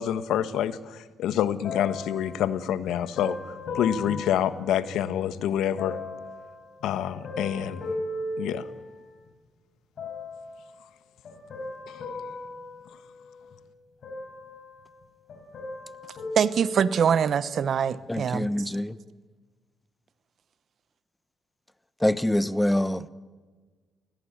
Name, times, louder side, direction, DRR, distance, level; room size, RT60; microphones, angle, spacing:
voice 1, 0.0-3.4 3.7-6.0 6.8-7.9 8.4-8.7 11.9-12.1, left 10 dB, 75° left, 1.4 m, -27 dB
sound 1, 1.6-5.2 5.8-9.3 10.0-10.6 11.2-13.6 14.0-15.0 15.3-17.3 18.0-18.1, left 2 dB, 60° left, 6.0 m, -38 dB
voice 2, 16.4-18.7, right 7 dB, 55° right, 0.9 m, -24 dB
voice 3, 18.1-19.0 22.0-23.1, left 1 dB, 10° left, 1.1 m, -25 dB
23.0 x 18.0 x 9.7 m
supercardioid pair, 65°, 0 cm